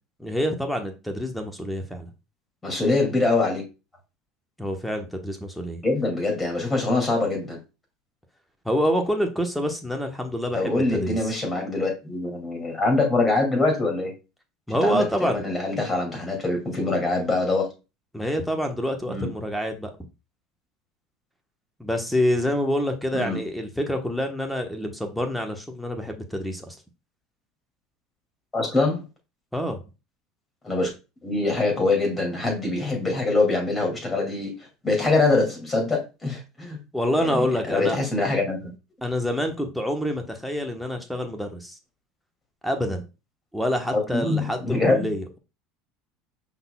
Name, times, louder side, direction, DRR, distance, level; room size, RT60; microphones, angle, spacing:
voice 1, 0.2-2.1 4.6-5.8 8.6-11.3 14.7-15.4 18.1-19.9 21.8-26.8 29.5-29.8 36.9-38.0 39.0-41.8 42.6-43.1 43.5-45.4, equal, ahead, 1.1 m, -27 dB
voice 2, 2.6-3.6 5.8-7.6 10.5-14.1 14.8-17.7 19.1-19.3 23.1-23.4 28.5-29.0 30.6-30.9 31.2-34.5 34.8-36.8 37.2-38.7 43.9-45.1, left 3 dB, 20° left, 2.3 m, -24 dB
5.5 x 4.0 x 2.3 m
hypercardioid pair, 90°, 0 cm